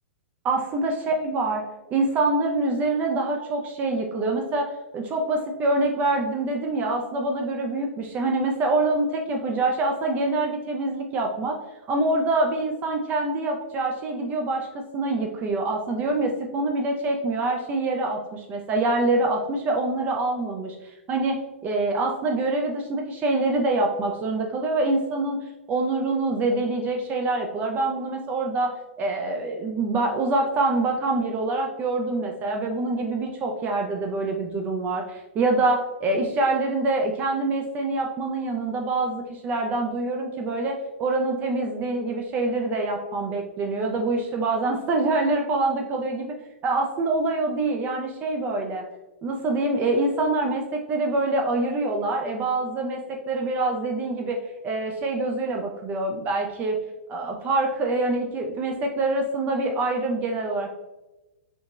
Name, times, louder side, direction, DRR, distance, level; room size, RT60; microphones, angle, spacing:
voice 1, 0.4-1.6 1.9-11.6 11.9-25.4 25.7-46.4 46.6-48.8 49.2-53.0 53.3-54.4 54.6-56.8 57.1-60.7, right 2 dB, 25° right, 2 dB, 0.4 m, -25 dB
5.1 x 2.8 x 2.3 m, 1.0 s
figure-of-eight pair, 105°, 7 cm